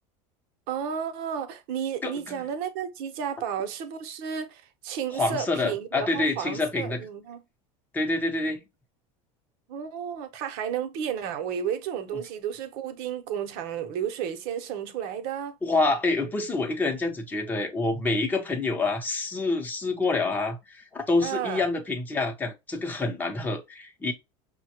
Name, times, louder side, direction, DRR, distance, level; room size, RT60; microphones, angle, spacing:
voice 1, 0.7-7.4 9.7-15.6 21.2-21.6, right 8 dB, 60° right, 0.9 m, -32 dB
voice 2, 2.0-2.4 5.1-7.1 7.9-8.6 15.6-24.1, left 3 dB, 10° left, 0.8 m, -27 dB
5.5 x 2.2 x 2.9 m
hypercardioid pair, 95°, 18 cm